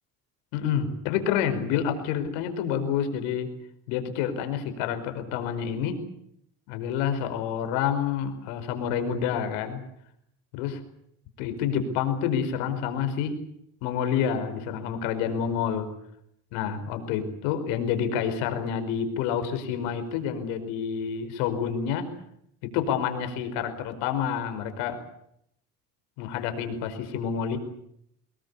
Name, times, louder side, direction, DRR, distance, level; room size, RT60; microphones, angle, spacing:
voice 1, 0.5-3.5 3.9-6.0 6.7-9.8 10.5-10.8 11.4-13.4 13.8-15.9 16.5-22.1 22.6-25.0 26.2-27.6, left 8 dB, 90° left, 9 dB, 5.1 m, -28 dB
25.5 x 20.5 x 8.4 m, 0.74 s
supercardioid pair, 90°, 34 cm